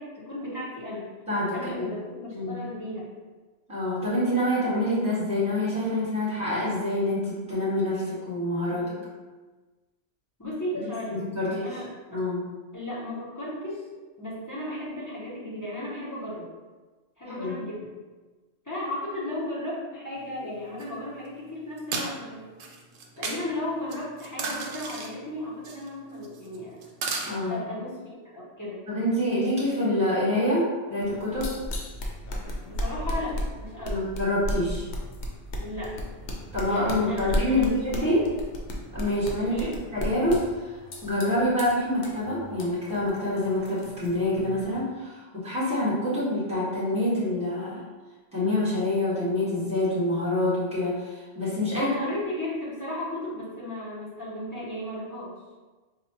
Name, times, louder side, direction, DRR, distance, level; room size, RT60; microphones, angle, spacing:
voice 1, 0.0-1.1 1.5-3.1 10.4-11.1 11.4-12.2 12.7-13.8 14.2-16.5 17.2-17.9 18.6-22.4 23.2-26.8 27.5-28.9 32.6-34.0 35.5-36.0 36.6-38.3 39.5-39.8 51.7-55.4, left 1 dB, 15° left, -8 dB, 0.8 m, -35 dB
voice 2, 1.3-2.0 2.3-2.6 3.7-8.9 10.7-10.8 11.1-11.7 12.1-12.4 17.3-17.5 27.2-27.7 28.9-31.5 33.9-34.9 36.5-38.3 38.9-40.7 41.0-47.8 48.3-51.9, left 1 dB, 5° right, -10 dB, 1.4 m, -26 dB
sound 1, 20.8-20.9 21.8-22.1 22.6-23.4 23.9-25.1 25.6-25.9 26.2-26.6 26.8-27.3, right 4 dB, 85° right, 0.9 m, -33 dB
sound 2, 31.0-44.8, left 1 dB, 70° left, 0.9 m, -35 dB
4.1 x 2.3 x 2.8 m, 1.3 s
omnidirectional pair, 1.3 m